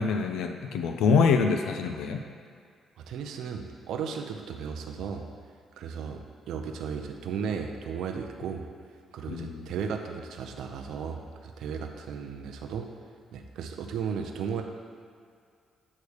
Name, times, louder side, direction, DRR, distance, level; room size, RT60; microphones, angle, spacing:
voice 1, 0.0-2.2 9.3-9.6, left 5 dB, 85° left, 5 dB, 0.5 m, -25 dB
voice 2, 3.0-5.3 5.8-6.2 6.5-8.6 9.1-12.9 13.3-14.6, right 6 dB, 80° right, 3 dB, 0.6 m, -35 dB
8.4 x 3.2 x 6.4 m, 2.2 s
cardioid pair, 90°, 0 cm